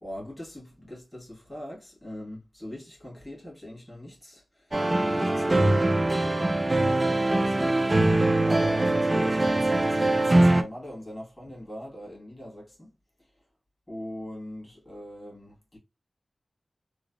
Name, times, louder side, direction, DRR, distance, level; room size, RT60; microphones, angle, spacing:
voice 1, 0.0-7.8 8.1-12.9 13.9-15.8, left 1 dB, 15° left, 1.5 m, -41 dB
sound 1, 4.7-10.6, right 2 dB, 30° right, 0.3 m, -22 dB
3.1 x 2.1 x 2.4 m
wide cardioid pair, 60°, 0 cm